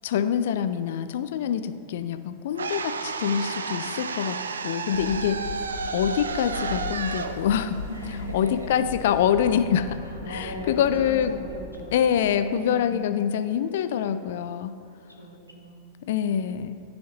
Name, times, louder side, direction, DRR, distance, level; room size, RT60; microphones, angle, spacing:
voice 1, 0.0-5.5 5.9-11.4 11.9-14.7 16.0-16.8, left 9 dB, 55° left, 11 dB, 0.3 m, -25 dB
sound 1, 2.6-8.7, right 5 dB, 70° right, 0.3 m, -32 dB
sound 2, 4.9-10.1, left 5 dB, 30° left, 1.1 m, -39 dB
voice 2, 5.0-5.6 7.9-8.7 10.0-12.0 12.5-13.1 15.2-15.9, equal, 90° right, -2 dB, 1.1 m, -38 dB
sound 3, 6.7-13.0, right 2 dB, 20° right, 1.0 m, -44 dB
12.5 x 4.3 x 2.9 m, 2.6 s
figure-of-eight pair, 90°, 0 cm